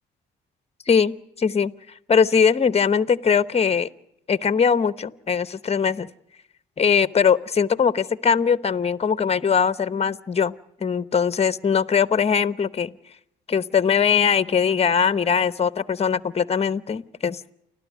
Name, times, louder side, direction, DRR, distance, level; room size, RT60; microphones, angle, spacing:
voice 1, 0.9-1.7 2.1-3.9 4.3-6.1 6.8-10.5 10.8-12.9 13.5-17.5, left 6 dB, 30° left, 15 dB, 0.9 m, -21 dB
29.5 x 12.5 x 9.3 m, 0.83 s
cardioid pair, 90°, 20 cm